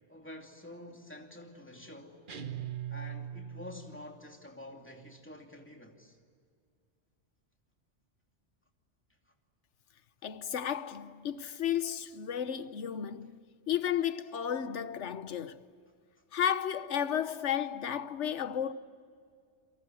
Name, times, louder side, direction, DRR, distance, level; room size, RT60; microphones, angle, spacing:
voice 1, 0.1-2.2 2.9-6.2, left 1 dB, 10° left, 2.7 m, -48 dB
sound 1, 2.3-4.0, right 9 dB, 50° right, 1.3 m, -40 dB
voice 2, 10.2-13.4 13.7-15.7 16.3-18.7, left 9 dB, 90° left, 1.2 m, -33 dB
30.0 x 23.5 x 7.9 m
omnidirectional pair, 1.2 m